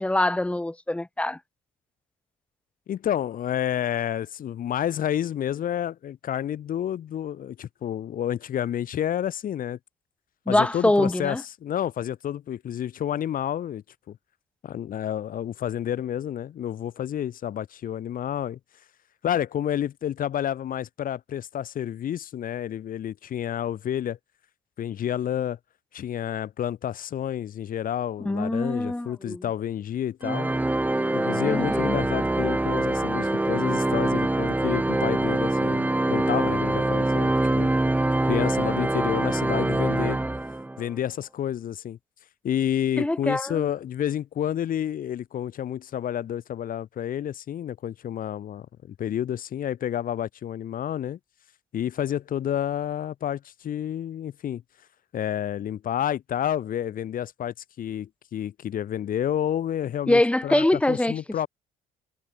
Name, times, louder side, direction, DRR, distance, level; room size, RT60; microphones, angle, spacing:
voice 1, 0.0-1.4 10.5-11.4 28.2-29.4 31.5-32.0 43.0-43.7 60.1-61.1, left 1 dB, 5° left, 1.6 m, -24 dB
voice 2, 2.9-9.8 10.5-14.2 14.6-18.6 19.2-24.2 24.8-25.6 25.9-30.5 31.1-37.7 38.3-40.2 40.8-42.0 42.4-51.2 51.7-54.6 55.1-61.5, left 10 dB, 55° left, 4.8 m, -29 dB
Organ, 30.2-40.9, right 2 dB, 10° right, 2.8 m, -24 dB
cardioid pair, 110°, 17 cm